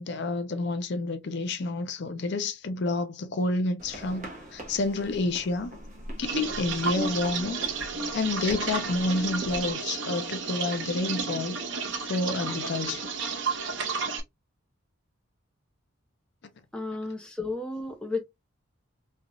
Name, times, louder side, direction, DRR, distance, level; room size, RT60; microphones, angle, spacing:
voice 1, 0.0-5.8 6.2-7.6 8.1-11.6 12.0-13.0, left 2 dB, 55° left, 0.5 m, -29 dB
sound 1, 3.8-9.7, right 1 dB, 40° right, 1.0 m, -42 dB
sound 2, 6.2-14.2, right 5 dB, 60° right, 0.7 m, -32 dB
voice 2, 16.7-18.2, left 3 dB, 5° left, 0.5 m, -33 dB
3.2 x 2.4 x 2.5 m
head